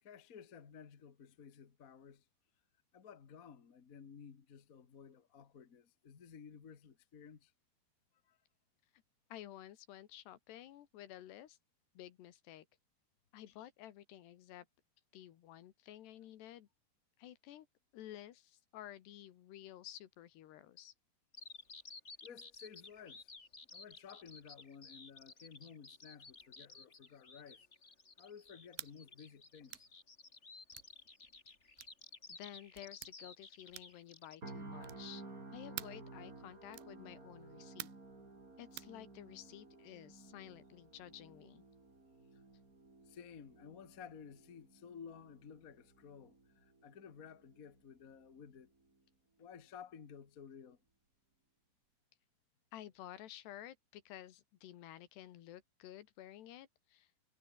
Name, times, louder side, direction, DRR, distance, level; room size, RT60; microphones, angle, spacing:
voice 1, 0.0-2.2 2.9-7.5 8.2-8.4 22.2-23.3 23.7-27.7 28.2-29.9 42.3-42.4 43.0-48.7 49.4-50.8, left 7 dB, 60° left, 0.9 m, -54 dB
voice 2, 9.3-11.6 12.0-12.7 13.3-14.7 15.1-16.7 17.2-17.7 17.9-20.9 32.3-35.2 35.5-37.9 38.6-41.6 52.7-57.1, left 12 dB, 85° left, 3.8 m, -52 dB
Bird vocalization bird call bird song, 21.3-34.4, left 3 dB, 20° left, 2.1 m, -55 dB
sound 1, 28.7-29.0 29.7-29.9 30.7-30.9 31.8-32.0 32.7-33.1 33.7-34.1 34.8-35.1 35.8-36.0 36.7-37.0 37.8-38.1 38.8-38.9, right 20 dB, 85° right, 2.6 m, -48 dB
sound 2, 34.4-48.4 48.8-49.0, right 3 dB, 20° right, 4.3 m, -55 dB
omnidirectional pair, 4.7 m